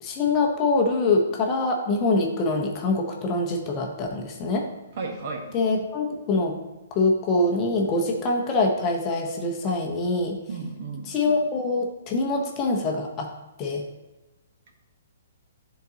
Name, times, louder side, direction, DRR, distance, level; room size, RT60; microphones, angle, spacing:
voice 1, 0.0-4.7 5.5-6.6 6.9-10.4 11.1-13.3 13.6-13.8, left 2 dB, 20° left, 1 dB, 0.7 m, -24 dB
voice 2, 4.9-5.6 10.5-11.1, right 4 dB, 45° right, 2 dB, 1.0 m, -33 dB
10.0 x 3.9 x 2.8 m, 1.1 s
hypercardioid pair, 160°, 0 cm